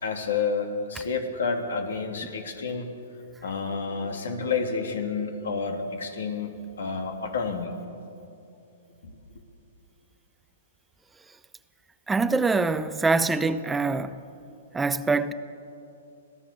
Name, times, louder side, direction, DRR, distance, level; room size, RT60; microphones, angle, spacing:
voice 1, 0.0-2.9 3.4-7.7 9.0-9.1, left 5 dB, 85° left, 3.1 m, -30 dB
voice 2, 12.1-14.2 14.7-15.3, right 3 dB, 10° right, 0.7 m, -24 dB
26.5 x 17.0 x 7.0 m
hypercardioid pair, 135°, 0 cm